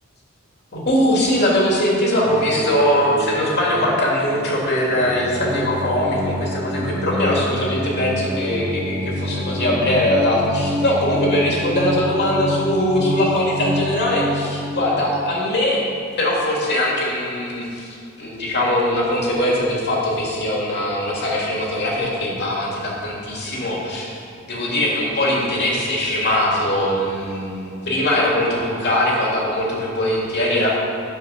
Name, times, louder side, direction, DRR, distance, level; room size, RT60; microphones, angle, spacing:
voice 1, 0.7-15.8 16.2-17.9 18.2-24.1 24.4-30.8, left 1 dB, 50° left, -3 dB, 2.6 m, -21 dB
sound 1, 2.2-15.2, left 1 dB, 25° right, 1.1 m, -28 dB
10.5 x 7.6 x 5.8 m, 2.6 s
head